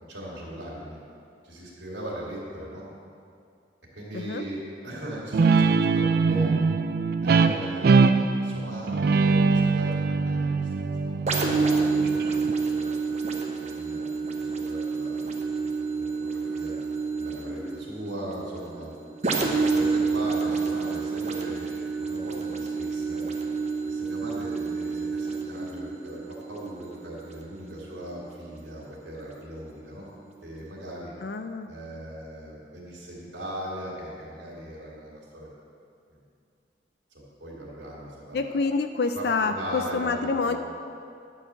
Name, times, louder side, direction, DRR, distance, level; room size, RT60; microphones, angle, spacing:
voice 1, 0.1-1.0 1.4-2.8 3.9-6.5 7.2-10.7 11.0-12.9 13.3-14.0 14.3-15.3 15.6-16.8 17.2-18.9 19.4-21.7 22.0-23.2 23.9-30.1 30.4-31.1 31.7-35.5 36.1-36.2 37.4-38.6 39.1-40.6, right 1 dB, 80° right, -5 dB, 2.8 m, -39 dB
voice 2, 4.1-4.4 31.2-31.7 38.3-40.6, left 4 dB, 60° left, 7 dB, 0.4 m, -27 dB
Guitar, 5.3-12.5, right 4 dB, 55° right, 0.4 m, -22 dB
Bubble bell, 11.3-28.8 29.3-29.5, right 4 dB, 40° right, 1.0 m, -29 dB
11.5 x 4.8 x 7.5 m, 2.4 s
head